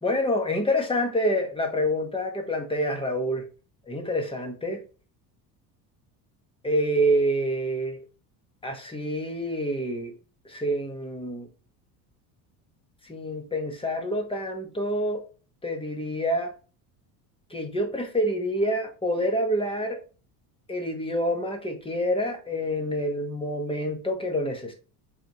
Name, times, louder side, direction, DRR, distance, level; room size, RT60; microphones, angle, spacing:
voice 1, 0.0-3.5 3.9-4.8 6.6-8.0 8.6-10.1 10.4-11.5 13.0-15.3 15.6-16.5 17.5-20.0 20.7-24.7, equal, 10° left, 1.4 m, -27 dB
7.6 x 4.1 x 3.1 m
cardioid pair, 120°, 44 cm